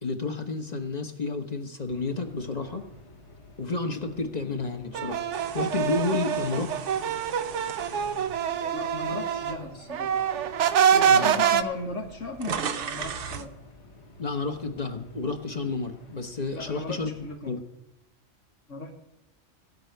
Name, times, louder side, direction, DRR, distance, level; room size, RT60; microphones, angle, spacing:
voice 1, 0.0-2.8 3.6-5.2 5.5-6.7 11.1-11.4 14.2-17.1 17.5-17.6, left 3 dB, 35° left, 5 dB, 1.3 m, -30 dB
sound 1, 1.9-17.4, left 2 dB, 65° left, 1.9 m, -52 dB
sound 2, 4.9-9.6 9.9-11.6, right 8 dB, 75° right, 1.0 m, -25 dB
sound 3, 5.3-9.6 10.1-10.3 11.2-11.3 11.5-13.5, right 7 dB, 55° right, 0.8 m, -38 dB
voice 2, 8.7-10.2 10.8-13.5 16.5-17.5 18.7-18.9, left 3 dB, 85° left, 0 dB, 2.1 m, -36 dB
16.5 x 5.7 x 9.2 m, 0.88 s
omnidirectional pair, 1.2 m